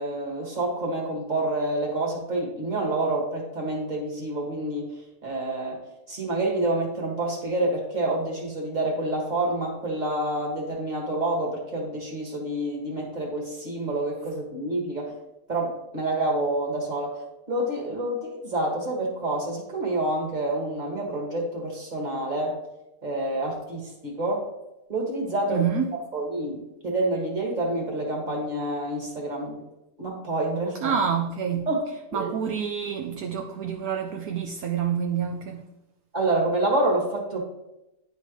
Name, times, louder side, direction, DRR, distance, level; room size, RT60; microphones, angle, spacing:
voice 1, 0.0-4.9 5.2-5.8 6.1-15.1 15.5-17.2 17.5-22.6 23.0-24.5 24.9-25.7 26.1-29.6 30.0-31.0 31.7-31.8 32.1-32.3 36.1-37.4, right 2 dB, 25° right, 1.8 m, -28 dB
voice 2, 25.5-25.9 30.8-31.7 32.1-35.7, right 7 dB, 70° right, 1.0 m, -27 dB
10.5 x 3.9 x 3.0 m
omnidirectional pair, 1.8 m